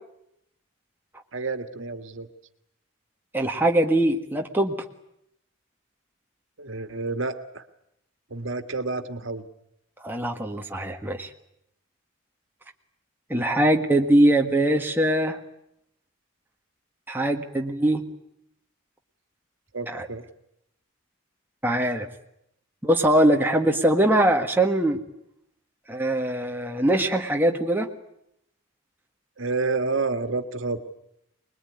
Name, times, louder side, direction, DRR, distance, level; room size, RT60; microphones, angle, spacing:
voice 1, 1.3-2.3 6.6-7.7 8.3-9.5 19.7-20.3 29.4-30.8, right 3 dB, 75° right, 9 dB, 1.8 m, -29 dB
voice 2, 3.3-4.8 10.0-11.3 13.3-15.4 17.1-18.1 19.9-20.1 21.6-22.1 22.8-25.0 25.9-27.9, right 1 dB, 10° right, 2 dB, 1.7 m, -22 dB
25.0 x 21.0 x 9.7 m, 0.79 s
head